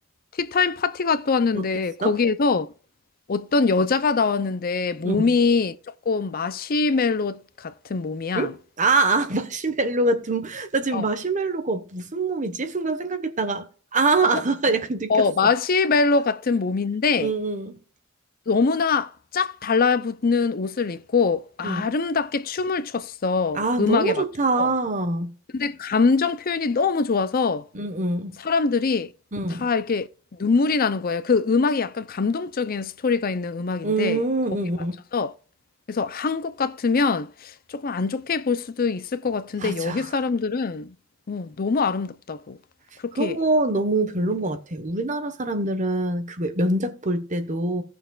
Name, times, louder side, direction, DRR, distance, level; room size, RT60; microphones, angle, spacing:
voice 1, 0.3-2.7 3.3-5.8 6.1-8.5 10.9-11.1 14.2-14.4 14.7-14.8 15.1-17.3 18.5-24.2 24.6-24.7 25.5-27.7 28.4-29.1 29.5-30.1 30.4-34.2 35.1-35.3 35.9-40.9 41.3-42.6 43.0-43.4, left 4 dB, 45° left, 0.5 m, -23 dB
voice 2, 8.3-13.7 13.9-15.3 17.2-17.8 21.6-21.9 23.5-25.3 27.7-28.4 29.3-29.7 33.8-35.0 39.6-40.1 43.2-47.8, right 2 dB, 40° right, 1.2 m, -24 dB
17.0 x 6.6 x 2.4 m
head